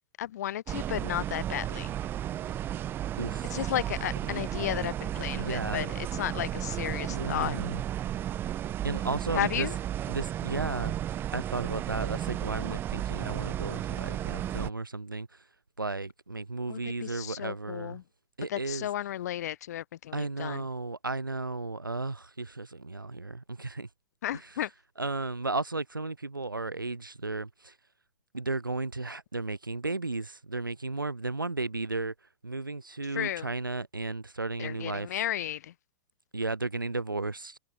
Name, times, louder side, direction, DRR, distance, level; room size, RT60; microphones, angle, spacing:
voice 1, 0.2-2.0 3.5-7.6 9.3-9.8 16.7-18.0 18.5-20.6 24.2-24.7 33.1-33.5 34.6-35.7, left 12 dB, 55° left, 1.7 m, -33 dB
sound 1, 0.7-14.7, right 11 dB, 20° right, 0.5 m, -33 dB
voice 2, 3.2-3.6 5.4-5.9 7.1-7.8 8.8-9.7 10.1-10.9 11.3-15.3 15.8-18.0 18.4-18.9 20.1-23.9 25.0-27.7 28.3-32.1 32.4-35.1 36.3-37.6, right 3 dB, 80° right, 2.2 m, -34 dB
figure-of-eight pair, 105°, 11 cm